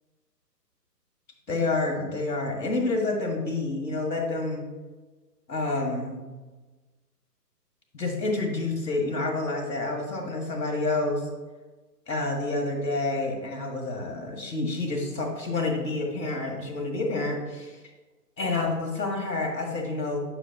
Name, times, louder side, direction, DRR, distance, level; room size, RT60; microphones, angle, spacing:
voice 1, 1.5-4.6 5.5-6.2 7.9-11.3 12.1-17.8 18.4-20.2, left 2 dB, 75° left, 1 dB, 1.7 m, -28 dB
8.7 x 5.7 x 2.3 m, 1.3 s
figure-of-eight pair, 140°, 50 cm